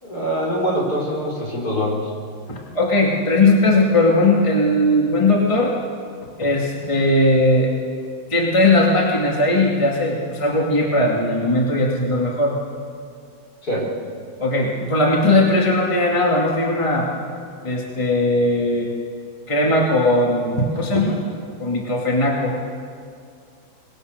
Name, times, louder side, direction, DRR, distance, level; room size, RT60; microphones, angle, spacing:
voice 1, 0.0-2.0 13.6-13.8, equal, 50° left, -3 dB, 4.9 m, -23 dB
voice 2, 2.5-5.7 6.4-7.7 8.3-12.6 14.4-17.1 17.6-18.9 19.5-21.2 21.6-22.5, left 1 dB, 15° left, -2 dB, 2.2 m, -18 dB
24.5 x 20.0 x 6.6 m, 2.3 s
omnidirectional pair, 2.2 m